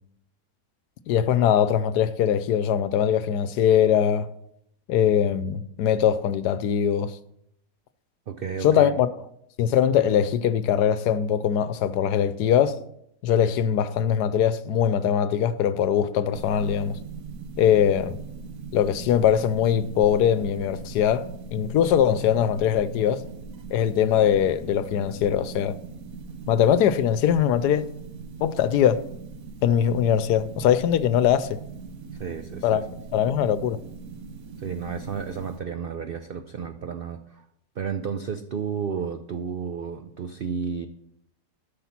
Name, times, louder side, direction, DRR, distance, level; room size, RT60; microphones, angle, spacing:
voice 1, 1.1-4.3 4.9-7.1 8.6-9.1 9.6-12.8 13.2-17.0 17.6-18.1 18.7-21.3 21.5-23.2 23.7-25.7 26.5-27.9 28.4-29.0 29.6-31.6 32.6-32.8 33.1-33.8, left 9 dB, 80° left, 1.2 m, -21 dB
voice 2, 8.3-8.9 32.1-32.9 34.6-37.4 37.8-40.9, right 6 dB, 90° right, 0.5 m, -32 dB
sound 1, 16.3-35.6, right 5 dB, 65° right, 1.2 m, -40 dB
12.5 x 5.7 x 5.8 m
omnidirectional pair, 1.7 m